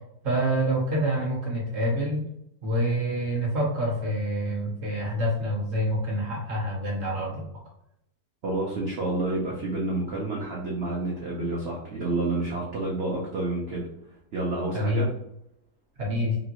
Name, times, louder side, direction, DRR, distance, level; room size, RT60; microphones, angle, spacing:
voice 1, 0.2-2.2 2.6-7.4 14.7-15.0 16.0-16.4, equal, 50° right, -3 dB, 0.8 m, -27 dB
voice 2, 8.4-13.9 14.3-15.1, right 2 dB, 85° right, -4 dB, 0.5 m, -29 dB
2.9 x 2.3 x 2.9 m, 0.79 s
omnidirectional pair, 1.9 m